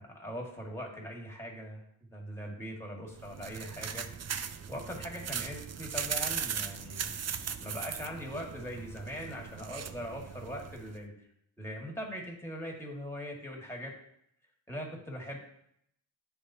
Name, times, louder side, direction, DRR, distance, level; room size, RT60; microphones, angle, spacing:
voice 1, 0.0-1.9 2.1-7.1 7.6-11.1 11.6-13.9 14.7-15.4, equal, 5° left, -1 dB, 1.7 m, -41 dB
sound 1, 3.1-11.0, right 7 dB, 35° right, 0.4 m, -38 dB
10.0 x 3.5 x 2.7 m, 0.73 s
cardioid pair, 80°, 49 cm